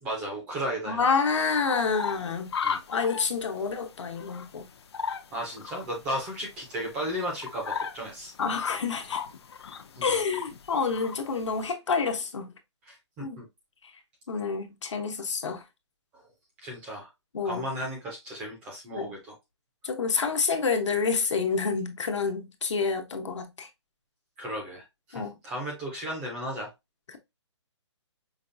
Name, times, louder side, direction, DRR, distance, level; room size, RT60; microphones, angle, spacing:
voice 1, 0.0-1.0 2.6-2.8 5.3-8.3 10.0-10.1 12.9-13.5 16.1-16.2 16.6-17.1 17.4-19.3 24.4-24.8 25.1-26.7, equal, 5° right, 0.4 m, -35 dB
voice 2, 0.9-2.5 2.9-4.7 8.4-9.2 10.0-12.5 13.2-13.4 14.3-15.6 17.3-17.6 18.9-19.1 19.8-23.7 25.1-25.4 27.1-27.2, left 5 dB, 75° left, 1.0 m, -28 dB
sound 1, 1.3-11.7, left 6 dB, 60° left, 0.6 m, -37 dB
5.1 x 2.3 x 2.5 m
hypercardioid pair, 175°, 15 cm